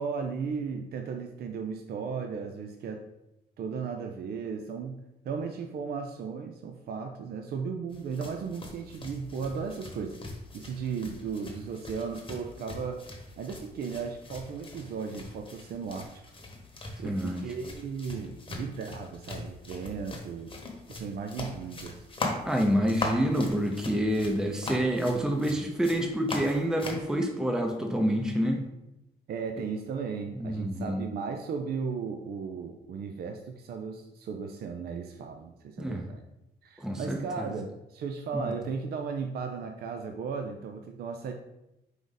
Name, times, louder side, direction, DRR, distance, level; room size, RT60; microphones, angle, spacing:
voice 1, 0.0-3.0 3.6-10.2 10.5-13.0 13.4-16.2 17.0-20.5 20.9-22.0 29.3-36.2 36.6-41.3, right 5 dB, 60° right, 4 dB, 0.4 m, -36 dB
sound 1, 7.9-27.1, left 2 dB, 30° left, 1.0 m, -40 dB
voice 2, 17.0-17.4 22.5-28.6 30.4-31.1 35.8-36.0 36.8-37.5 38.3-38.5, equal, 5° right, 4 dB, 0.6 m, -28 dB
4.8 x 2.6 x 3.9 m, 0.90 s
cardioid pair, 75°, 18 cm